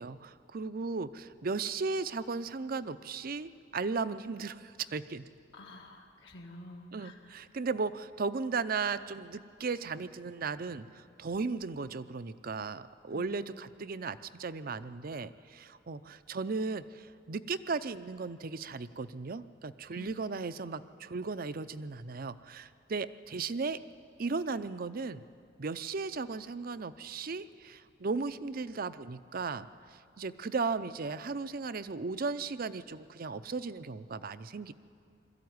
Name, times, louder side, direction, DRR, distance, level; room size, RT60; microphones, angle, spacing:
voice 1, 0.0-5.3 6.9-23.8 24.2-25.2 25.6-29.6 29.9-34.7, right 4 dB, 55° right, 14 dB, 0.6 m, -36 dB
voice 2, 5.5-7.3 13.1-13.3 19.9-20.1, left 1 dB, 80° left, -1 dB, 2.1 m, -49 dB
21.0 x 13.5 x 9.5 m, 2.4 s
head